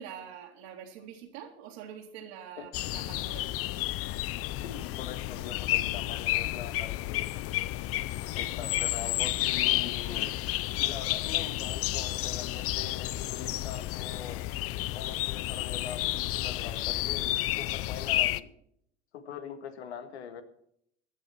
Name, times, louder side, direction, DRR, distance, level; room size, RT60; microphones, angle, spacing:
voice 1, 0.0-3.6, right 8 dB, 75° right, -1 dB, 2.9 m, -45 dB
sound 1, 2.7-18.4, left 16 dB, 45° left, 0.6 m, -31 dB
voice 2, 4.5-7.3 8.3-10.3 10.8-14.5 14.9-18.5 19.1-20.4, left 7 dB, 85° left, 9 dB, 1.8 m, -43 dB
15.5 x 11.5 x 4.5 m, 0.70 s
hypercardioid pair, 85°, 32 cm